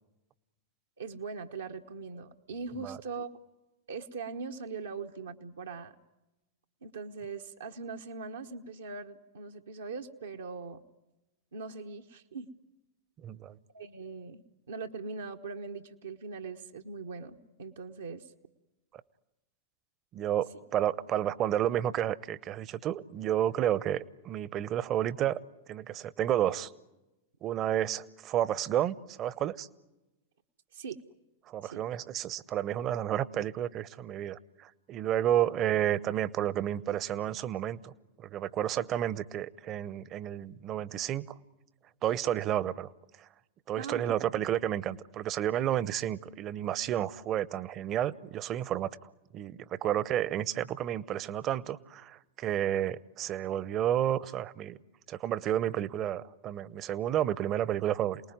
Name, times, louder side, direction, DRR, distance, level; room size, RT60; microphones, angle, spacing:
voice 1, 1.0-3.3 3.9-5.9 6.8-10.8 11.5-12.5 13.7-14.4 14.7-18.3 30.7-31.0 31.6-31.8 43.8-44.1, right 4 dB, 70° right, 2 dB, 1.2 m, -41 dB
voice 2, 13.2-13.6 20.1-25.4 25.7-26.7 27.4-29.7 31.5-37.9 38.2-41.3 42.0-42.9 43.7-48.9 49.3-54.8 55.1-58.2, right 11 dB, 35° right, 20 dB, 0.9 m, -31 dB
28.0 x 20.0 x 9.4 m, 1.0 s
figure-of-eight pair, 95°, 0 cm